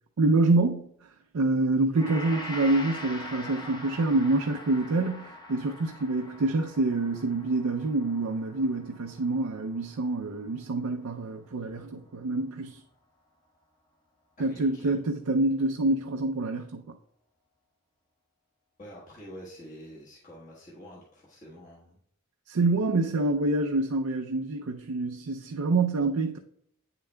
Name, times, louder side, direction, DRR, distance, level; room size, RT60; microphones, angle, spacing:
voice 1, 0.2-0.9 1.3-12.8 14.4-16.8 22.5-26.4, right 2 dB, 90° right, 0.5 m, -26 dB
Gong, 2.0-10.4 10.7-10.9, left 1 dB, 20° left, 0.8 m, -43 dB
voice 2, 14.4-15.0 18.8-22.0, equal, 35° left, 1.3 m, -47 dB
8.9 x 6.8 x 2.2 m
head